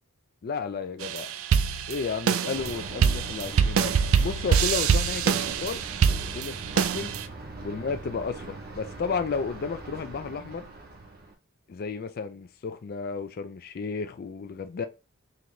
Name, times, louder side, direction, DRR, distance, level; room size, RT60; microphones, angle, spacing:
voice 1, 0.4-1.3 1.9-5.8 6.2-7.1 7.6-10.6 11.7-14.9, left 5 dB, 45° left, 0.4 m, -33 dB
sound 1, 1.0-7.3, right 7 dB, 70° right, 0.4 m, -25 dB
Thunder, 2.5-11.3, right 2 dB, 45° right, 0.8 m, -41 dB
3.8 x 3.0 x 3.2 m
head